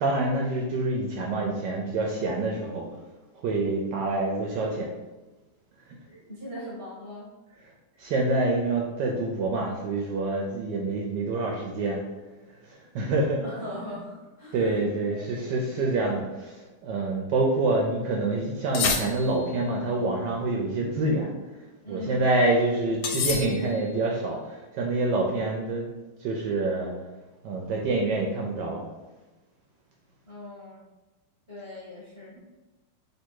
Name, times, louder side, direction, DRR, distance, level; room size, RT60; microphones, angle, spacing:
voice 1, 0.0-2.9 3.4-4.9 8.0-12.0 12.7-13.4 14.5-21.3 21.9-25.9 26.2-26.9 27.4-28.8, right 2 dB, 75° right, 0 dB, 1.1 m, -26 dB
voice 2, 6.1-7.3 13.4-15.6 21.8-22.3 30.2-30.8 31.5-32.3, left 1 dB, 25° left, -6 dB, 0.6 m, -40 dB
sound 1, 18.7-19.6 23.0-24.0, left 6 dB, 75° left, 1.3 m, -29 dB
3.4 x 2.6 x 4.6 m, 1.1 s
omnidirectional pair, 2.3 m